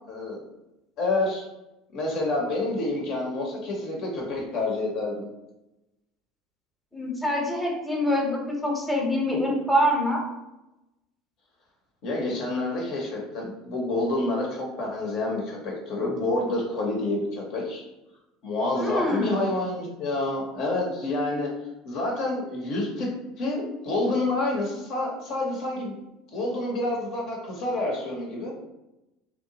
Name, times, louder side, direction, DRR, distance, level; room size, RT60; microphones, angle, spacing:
voice 1, 0.1-0.4 1.0-1.5 1.9-5.3 12.0-17.8 18.4-21.5 21.9-23.1 23.4-26.0 26.3-28.5, left 2 dB, 55° left, -1 dB, 0.7 m, -28 dB
voice 2, 6.9-10.2 18.8-19.4, left 1 dB, ahead, -2 dB, 0.8 m, -25 dB
2.7 x 2.1 x 2.8 m, 0.95 s
figure-of-eight pair, 70°, 0 cm